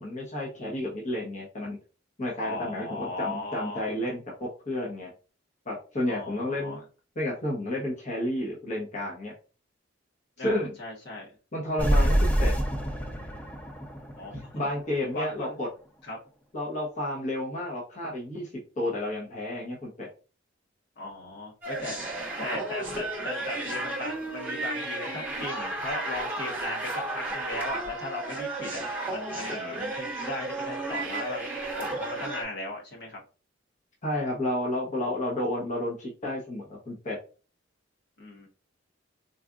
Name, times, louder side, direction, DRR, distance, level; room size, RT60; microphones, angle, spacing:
voice 1, 0.0-1.8 2.2-5.1 5.7-6.8 7.2-9.3 10.4-10.8 11.5-12.5 14.5-15.7 16.5-18.5 18.8-20.1 34.0-37.2, left 1 dB, 40° left, -3 dB, 0.9 m, -31 dB
voice 2, 2.4-3.9 6.0-6.8 10.4-11.3 14.2-14.7 15.1-15.6 16.0-16.2 21.0-22.0 22.4-28.8 29.1-31.4 31.8-33.2 38.2-38.5, left 2 dB, 60° left, -2 dB, 1.1 m, -37 dB
sound 1, 11.8-15.2, equal, 10° left, 0.5 m, -26 dB
sound 2, 21.6-32.4, right 2 dB, 10° right, 1.1 m, -33 dB
4.0 x 2.4 x 2.4 m, 0.35 s
head